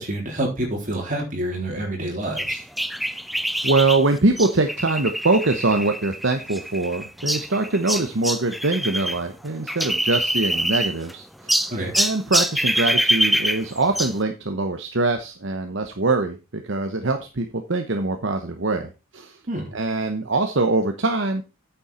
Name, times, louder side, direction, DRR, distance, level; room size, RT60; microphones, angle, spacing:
voice 1, 0.0-2.6 11.7-11.9 19.5-19.8, right 1 dB, 40° right, 0 dB, 3.7 m, -27 dB
sound 1, 2.4-9.2 9.5-11.1 11.5-14.2, equal, ahead, 0.4 m, -25 dB
voice 2, 3.6-11.6 11.9-19.4 19.7-21.4, right 3 dB, 60° right, 6 dB, 1.0 m, -23 dB
8.9 x 7.1 x 4.3 m, 0.29 s
head